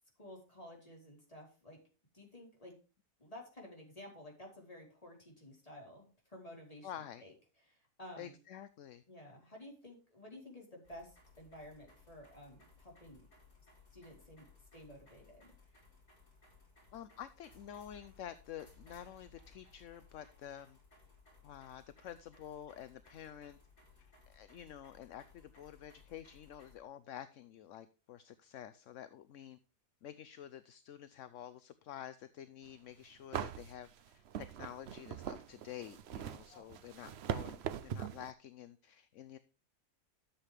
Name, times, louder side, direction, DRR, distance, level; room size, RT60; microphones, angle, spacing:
voice 1, 0.2-1.8 2.1-2.8 3.2-7.3 7.7-8.4 9.1-13.3 13.9-14.5 14.7-15.8 36.5-36.6, left 1 dB, 20° left, 4.6 m, -53 dB
voice 2, 6.8-7.2 8.2-9.0 16.9-20.8 21.4-23.6 24.0-29.6 30.0-39.4, left 10 dB, 60° left, 0.9 m, -49 dB
sound 1, 10.8-26.8, left 3 dB, 80° left, 5.2 m, -63 dB
sound 2, 32.8-32.9 33.3-38.3, right 9 dB, 60° right, 0.7 m, -41 dB
13.0 x 7.6 x 3.4 m
omnidirectional pair, 1.7 m